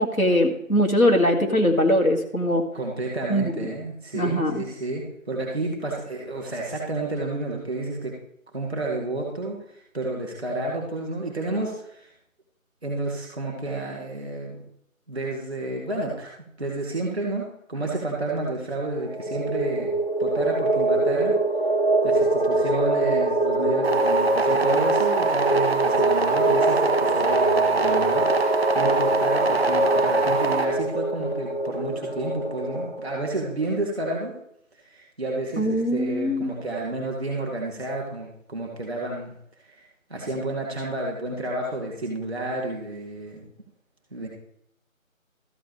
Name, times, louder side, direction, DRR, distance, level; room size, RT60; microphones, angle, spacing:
voice 1, 0.0-2.6 3.3-3.7 4.1-4.6 35.6-36.5, left 1 dB, 85° left, 2 dB, 2.5 m, -21 dB
voice 2, 2.7-8.1 8.5-12.1 12.8-14.6 15.1-16.3 16.6-19.9 20.2-21.3 22.0-34.3 34.9-39.3 39.7-39.8 40.1-43.5 44.1-44.3, right 2 dB, 5° left, -1 dB, 1.5 m, -30 dB
sound 1, 19.0-33.3, right 2 dB, 45° left, 0.4 m, -24 dB
sound 2, 23.8-30.6, right 4 dB, 10° right, 1.2 m, -25 dB
13.5 x 8.5 x 3.3 m, 0.71 s
figure-of-eight pair, 165°, 41 cm